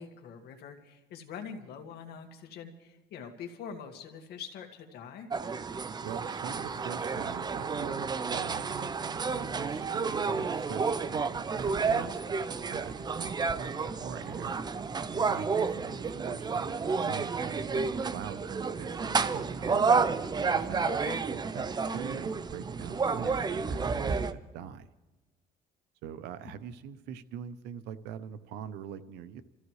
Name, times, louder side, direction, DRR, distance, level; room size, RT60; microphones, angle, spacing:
voice 1, 0.0-5.3 13.9-14.3 20.8-21.2 26.4-26.5, left 6 dB, 75° left, 5 dB, 1.9 m, -44 dB
sound 1, 5.3-24.3, right 5 dB, 25° right, 0.6 m, -31 dB
voice 2, 6.0-14.6 15.0-20.0 20.5-21.1 21.3-21.7 21.9-24.9 26.0-29.4, right 8 dB, 90° right, 12 dB, 0.8 m, -43 dB
28.0 x 14.5 x 3.2 m, 1.1 s
cardioid pair, 110°, 17 cm